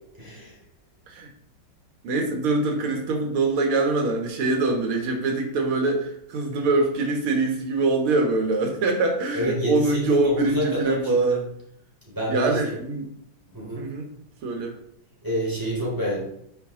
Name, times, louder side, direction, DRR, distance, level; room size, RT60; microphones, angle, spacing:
voice 1, 0.1-0.6 9.3-11.4 12.1-12.7 13.5-13.9 15.2-16.2, equal, 10° right, -6 dB, 3.7 m, -28 dB
voice 2, 2.0-11.4 12.3-13.1 13.5-14.1 14.4-14.8, right 3 dB, 80° right, 2 dB, 2.2 m, -24 dB
10.5 x 5.9 x 3.8 m, 0.72 s
omnidirectional pair, 2.3 m